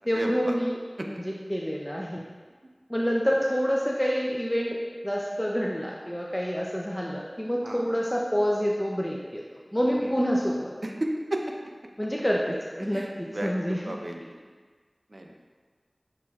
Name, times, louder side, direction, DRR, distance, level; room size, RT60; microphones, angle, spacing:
voice 1, 0.1-0.8 1.1-2.2 2.9-4.8 5.0-9.4 9.7-10.7 12.0-14.0, equal, 10° left, -3 dB, 0.4 m, -27 dB
voice 2, 10.8-11.4 12.9-13.5 13.9-14.3 15.1-15.3, right 1 dB, 60° right, 2 dB, 0.4 m, -32 dB
6.0 x 3.1 x 2.3 m, 1.5 s
wide cardioid pair, 40°, 0 cm